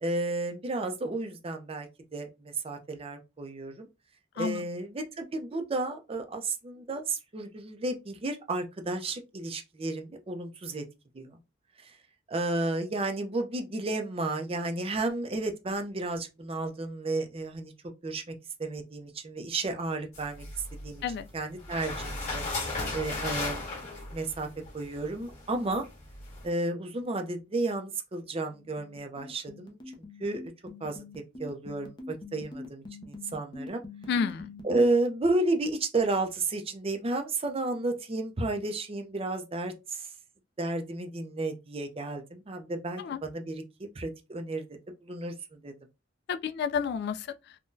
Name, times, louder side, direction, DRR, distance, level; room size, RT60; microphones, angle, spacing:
voice 1, 0.0-3.9 4.4-10.8 11.1-11.4 11.8-11.9 12.3-17.7 18.0-18.3 18.6-20.5 20.7-21.0 21.3-22.4 22.9-24.5 24.7-25.8 26.4-29.8 30.2-30.5 30.8-31.0 31.4-33.8 34.6-40.1 40.6-45.7, right 2 dB, 30° right, 0.5 m, -32 dB
sound 1, 20.1-21.2 21.6-26.5, left 2 dB, 40° left, 1.7 m, -36 dB
sound 2, 28.5-34.8, left 2 dB, 25° left, 0.6 m, -43 dB
voice 2, 34.1-34.5 43.0-43.2 46.3-47.3, left 6 dB, 60° left, 0.3 m, -30 dB
3.7 x 2.2 x 2.6 m
head